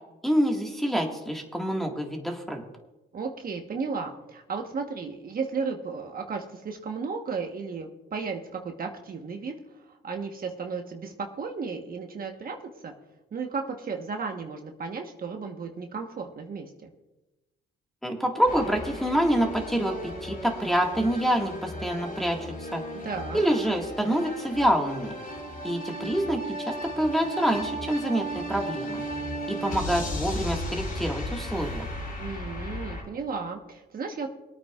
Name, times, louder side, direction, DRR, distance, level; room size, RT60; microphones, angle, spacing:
voice 1, 0.2-2.6 18.0-22.8 23.3-25.1 25.6-29.0 29.5-31.9, equal, ahead, 0 dB, 1.8 m, -26 dB
voice 2, 3.1-9.6 9.9-12.9 13.3-16.9 22.9-23.4 32.2-34.3, right 5 dB, 45° right, 3 dB, 1.2 m, -34 dB
sound 1, 18.5-33.0, equal, 50° left, 4.2 m, -35 dB
24.5 x 8.9 x 2.4 m, 1.0 s
cardioid pair, 90°, 20 cm